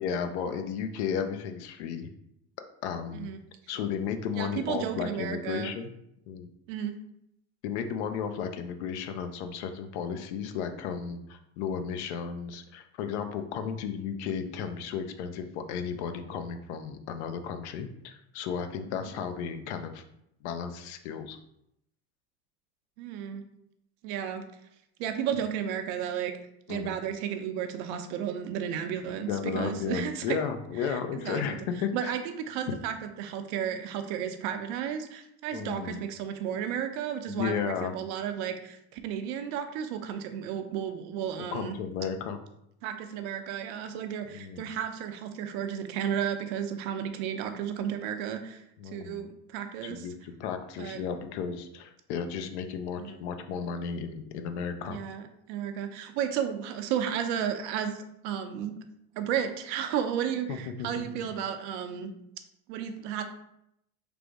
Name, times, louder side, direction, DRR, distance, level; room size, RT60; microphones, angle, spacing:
voice 1, 0.0-2.1 2.8-3.3 3.7-5.9 6.3-6.5 7.6-20.0 20.4-21.4 26.7-26.9 29.3-32.1 35.5-36.0 37.3-37.9 41.4-42.4 44.3-44.7 48.8-49.2 49.8-55.0 60.5-60.9, left 7 dB, 85° left, 7 dB, 0.6 m, -34 dB
voice 2, 4.4-5.7 6.7-6.9 19.2-19.3 23.0-23.4 24.0-24.4 25.0-26.3 26.7-30.4 30.8-31.6 31.9-41.8 42.8-50.1 50.8-51.0 53.0-53.2 54.9-58.7 59.1-62.1 62.7-63.2, right 9 dB, 75° right, 7 dB, 0.7 m, -33 dB
3.4 x 2.6 x 4.6 m, 0.78 s
supercardioid pair, 125°, 33 cm